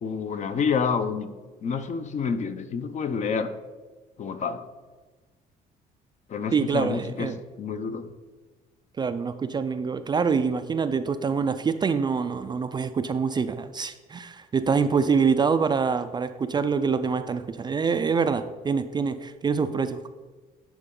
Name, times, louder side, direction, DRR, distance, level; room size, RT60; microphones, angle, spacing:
voice 1, 0.0-1.3 1.6-3.5 4.2-4.6 6.3-8.1, left 5 dB, 45° left, 10 dB, 0.6 m, -28 dB
voice 2, 6.5-7.4 9.0-20.1, right 5 dB, 25° right, 10 dB, 0.3 m, -25 dB
10.5 x 4.5 x 3.8 m, 1.3 s
cardioid pair, 110°, 17 cm